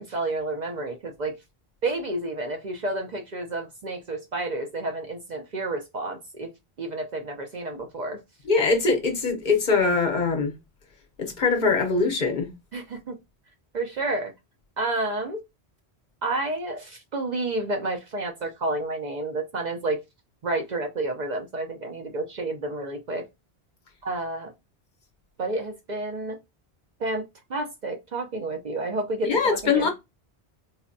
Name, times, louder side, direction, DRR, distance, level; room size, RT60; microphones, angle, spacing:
voice 1, 0.0-1.4 1.8-6.5 6.8-8.2 12.7-13.2 13.7-14.3 14.8-15.4 16.2-20.0 20.4-23.3 24.0-24.5 25.4-26.4 27.0-29.9, right 2 dB, 50° right, 0.6 m, -30 dB
voice 2, 8.5-10.5 11.2-12.5 29.2-29.9, left 4 dB, 55° left, 0.8 m, -22 dB
4.0 x 2.2 x 2.5 m
omnidirectional pair, 1.1 m